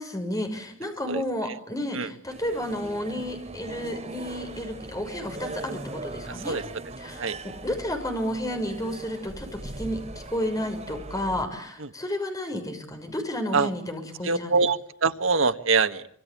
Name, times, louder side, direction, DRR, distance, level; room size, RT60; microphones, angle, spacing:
voice 1, 0.0-6.6 7.0-10.0 10.3-14.6, equal, 20° left, 5 dB, 6.2 m, -31 dB
voice 2, 1.1-1.6 1.9-2.1 6.3-6.6 7.2-7.4 11.8-11.9 13.5-13.7 14.2-16.1, right 4 dB, 70° right, 9 dB, 1.5 m, -24 dB
sound 1, 2.3-11.4, right 2 dB, 35° right, 4.2 m, -40 dB
26.5 x 24.5 x 8.6 m, 0.64 s
head